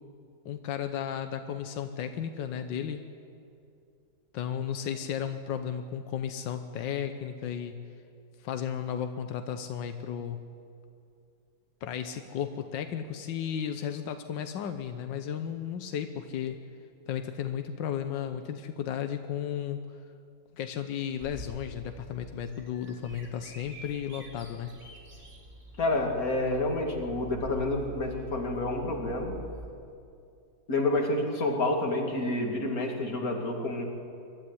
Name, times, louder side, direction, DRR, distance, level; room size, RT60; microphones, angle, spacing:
voice 1, 0.4-3.0 4.3-7.8 8.4-10.5 11.8-16.6 17.1-19.8 20.6-24.8, left 9 dB, 90° left, 7 dB, 1.6 m, -34 dB
Bird vocalization bird call bird song, 21.2-29.7, right 1 dB, 40° right, 3.5 m, -46 dB
voice 2, 25.8-29.4 30.7-33.8, left 2 dB, 50° left, 1 dB, 2.8 m, -29 dB
23.5 x 13.0 x 9.8 m, 2.5 s
omnidirectional pair, 1.9 m